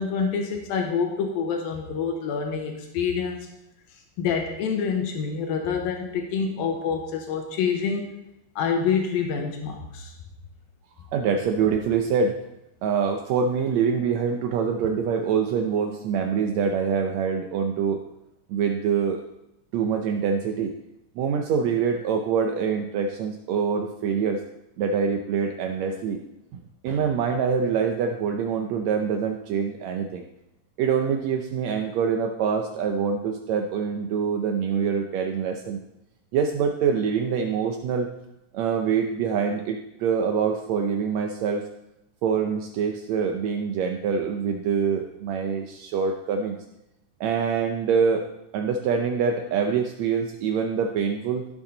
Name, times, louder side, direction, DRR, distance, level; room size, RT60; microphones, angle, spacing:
voice 1, 0.0-3.5 3.9-8.1 8.6-10.1, left 6 dB, 85° left, 3 dB, 2.9 m, -27 dB
voice 2, 11.1-12.3 12.8-18.0 18.5-19.2 19.7-20.7 21.2-24.4 24.8-26.2 26.8-30.2 30.8-35.8 36.3-38.1 38.5-41.6 42.2-46.6 47.2-48.3 48.5-51.5, right 6 dB, 80° right, 3 dB, 1.6 m, -25 dB
16.5 x 7.2 x 3.9 m, 0.86 s
omnidirectional pair, 4.1 m